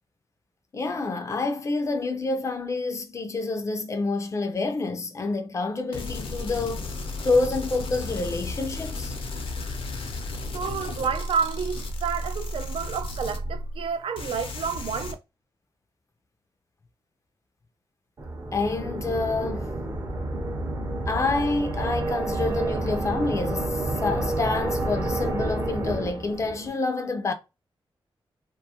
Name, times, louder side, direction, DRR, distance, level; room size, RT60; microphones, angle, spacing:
voice 1, 0.7-6.9 7.2-9.1 18.5-19.7 21.1-27.3, left 3 dB, 35° left, 0.4 m, -28 dB
sound 1, 5.9-13.9 14.2-15.1, left 2 dB, 75° left, 0.6 m, -33 dB
voice 2, 10.5-15.2, right 6 dB, 75° right, 0.4 m, -30 dB
sound 2, 18.2-26.7, right 2 dB, 35° right, 0.6 m, -29 dB
2.4 x 2.3 x 2.8 m
wide cardioid pair, 155°, 9 cm